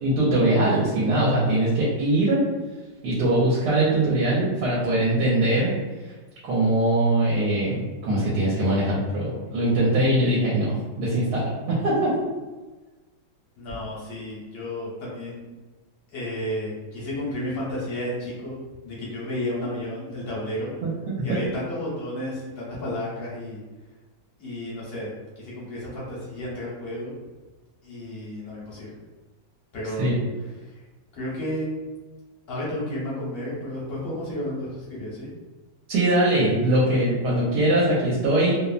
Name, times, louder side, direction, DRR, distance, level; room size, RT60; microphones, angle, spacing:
voice 1, 0.0-2.4 3.0-5.7 6.4-12.2 20.8-20.9 21.3-21.4 30.0-30.1 35.9-38.6, right 1 dB, 75° right, -6 dB, 1.2 m, -22 dB
voice 2, 13.6-15.4 16.1-18.6 18.8-20.7 21.2-23.6 24.4-25.1 25.4-27.1 27.8-29.0 29.7-30.1 31.1-31.7 32.5-35.3, left 1 dB, 45° left, -7 dB, 0.8 m, -32 dB
2.9 x 2.0 x 2.4 m, 1.2 s
omnidirectional pair, 1.9 m